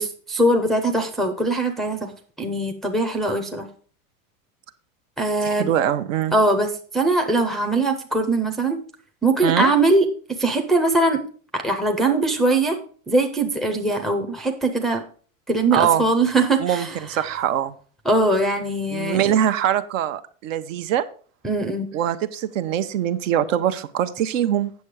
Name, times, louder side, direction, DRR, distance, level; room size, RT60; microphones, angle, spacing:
voice 1, 0.0-2.1 2.4-3.7 5.2-5.7 6.3-6.7 6.9-8.8 9.2-10.1 10.4-11.2 11.5-12.8 13.1-15.0 15.5-17.0 18.1-19.2 21.4-21.9, right 2 dB, ahead, 3 dB, 0.5 m, -21 dB
voice 2, 5.4-6.3 9.4-9.7 15.7-16.1 16.6-17.7 18.9-21.0 21.9-24.7, right 10 dB, 70° right, 11 dB, 1.0 m, -23 dB
8.5 x 6.7 x 4.7 m, 0.43 s
supercardioid pair, 150°, 40 cm